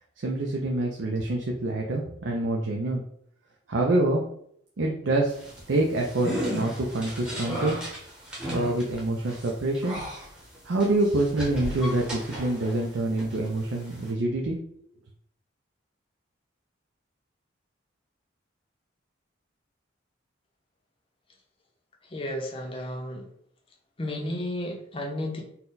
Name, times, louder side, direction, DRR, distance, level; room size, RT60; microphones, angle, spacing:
voice 1, 0.2-3.0 3.7-4.2 4.8-5.3 5.7-7.8 8.5-10.0 10.6-14.6, right 2 dB, 70° right, 0 dB, 0.5 m, -26 dB
sound 1, 5.3-12.9 13.2-14.1, equal, 5° right, 0.9 m, -35 dB
voice 2, 22.1-23.3 24.0-25.4, left 1 dB, 25° left, 0 dB, 0.6 m, -32 dB
4.1 x 2.2 x 3.9 m, 0.68 s
head